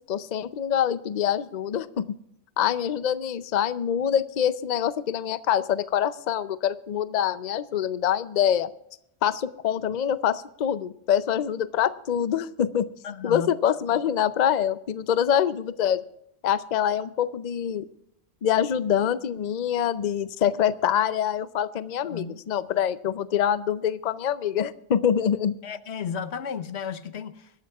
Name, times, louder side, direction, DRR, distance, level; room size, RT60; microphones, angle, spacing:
voice 1, 0.1-2.2 2.6-8.7 9.2-12.9 13.2-16.0 16.4-17.9 18.4-25.6, left 9 dB, 50° left, 0.6 m, -25 dB
voice 2, 13.0-13.5 21.8-22.4 25.6-27.5, left 7 dB, 85° left, 1.1 m, -34 dB
24.5 x 12.0 x 2.4 m
omnidirectional pair, 1.1 m